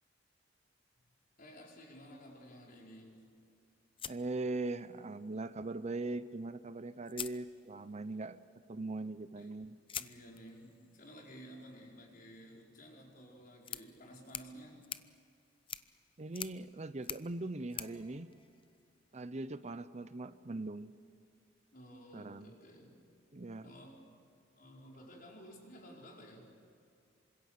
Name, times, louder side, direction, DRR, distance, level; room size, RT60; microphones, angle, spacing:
voice 1, 1.4-3.2 9.4-9.6 10.0-14.9 21.7-23.0 23.6-24.2 24.6-26.5, equal, 50° left, -1 dB, 5.2 m, -54 dB
sound 1, 4.0-5.1 6.4-6.5 7.0-8.1 9.9-19.1, left 8 dB, 30° left, 0.7 m, -48 dB
voice 2, 4.1-8.4 8.7-9.8 16.2-18.3 19.1-20.9 22.1-22.5 23.3-23.7, right 2 dB, 35° right, 13 dB, 0.7 m, -40 dB
sound 2, 17.8-21.2 21.5-21.9 22.2-22.8 23.0-23.8, right 1 dB, 20° right, 5.2 m, -68 dB
27.5 x 26.0 x 6.7 m, 2.4 s
head